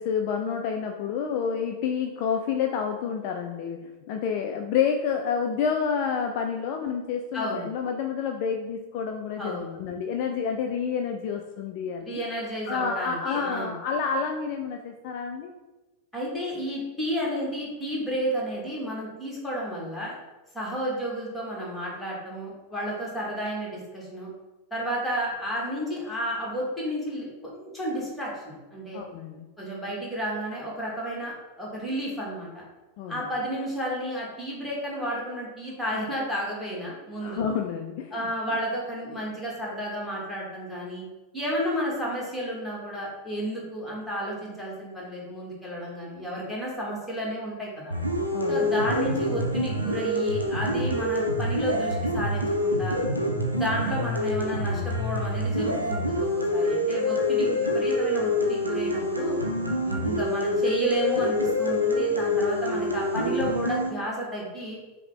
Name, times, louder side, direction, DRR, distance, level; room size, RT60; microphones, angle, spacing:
voice 1, 0.0-12.2 12.7-15.5 28.9-29.5 33.0-33.2 37.2-38.3 48.3-48.8, left 6 dB, 45° left, 3 dB, 0.3 m, -29 dB
voice 2, 7.3-7.7 9.4-9.8 12.0-13.7 16.1-20.2 20.5-24.3 24.7-29.0 29.6-31.3 31.6-32.5 33.1-37.4 38.1-41.0 41.3-48.0 48.5-53.0 53.5-59.4 59.8-64.8, equal, 5° left, -5 dB, 1.4 m, -32 dB
sound 1, 47.9-63.9, left 1 dB, 85° right, 0.5 m, -26 dB
5.6 x 2.1 x 3.3 m, 1.2 s
figure-of-eight pair, 90°, 0 cm